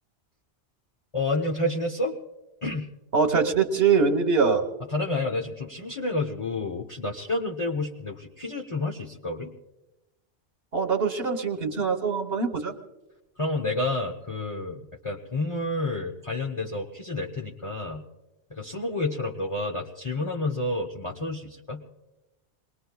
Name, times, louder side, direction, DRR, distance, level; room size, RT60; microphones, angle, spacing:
voice 1, 1.1-2.1 2.6-2.9 4.9-9.5 13.4-18.0 18.5-21.8, left 2 dB, 30° left, 0 dB, 1.0 m, -29 dB
voice 2, 3.1-4.7 10.7-12.7, right 5 dB, 60° right, 4 dB, 1.5 m, -23 dB
27.0 x 21.0 x 2.3 m, 1.0 s
omnidirectional pair, 1.1 m